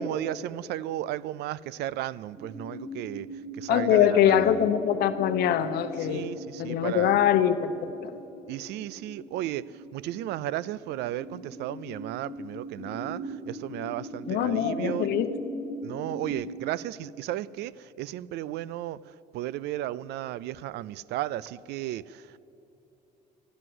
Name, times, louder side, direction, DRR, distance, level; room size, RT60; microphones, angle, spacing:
voice 1, 0.0-3.3 3.5-4.7 6.0-7.2 8.5-15.2 15.8-22.4, right 13 dB, 80° right, 0.4 m, -34 dB
sound 1, 2.3-16.3, equal, 15° right, 4.2 m, -40 dB
voice 2, 3.7-6.3 6.6-8.1 14.3-15.3, left 10 dB, 70° left, 0.7 m, -23 dB
12.5 x 11.0 x 7.7 m
cardioid pair, 110°, 17 cm